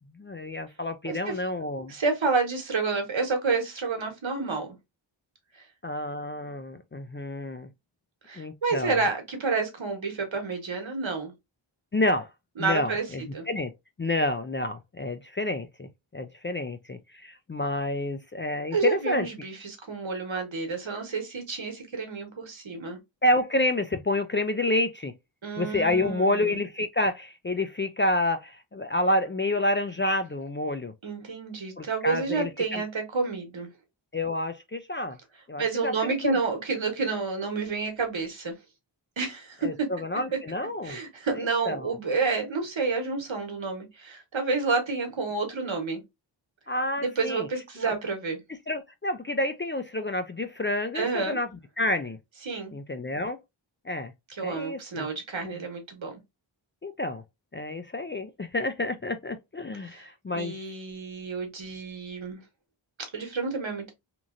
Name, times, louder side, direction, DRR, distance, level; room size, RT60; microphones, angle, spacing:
voice 1, 0.1-1.9 5.8-7.7 8.4-9.0 11.9-12.3 12.6-13.7 14.0-19.3 23.2-25.1 25.6-30.9 31.8-32.8 34.1-35.2 35.5-36.4 39.6-41.0 41.3-42.0 46.7-47.5 47.8-47.9 48.7-51.5 51.8-52.2 52.7-53.4 53.8-54.1 54.4-55.1 55.4-55.6 56.8-57.2 57.5-60.6, left 1 dB, 25° left, 0.3 m, -29 dB
voice 2, 1.9-4.7 5.6-5.7 8.2-11.3 12.6-13.0 13.3-13.5 18.7-23.0 25.4-26.5 31.0-33.7 35.6-38.5 39.2-39.9 40.8-46.0 47.0-48.4 50.9-51.4 52.4-52.7 54.4-56.1 59.8-60.1 60.3-62.4 63.1-63.9, right 4 dB, 70° right, 1.2 m, -29 dB
3.0 x 2.6 x 2.4 m
wide cardioid pair, 45°, 48 cm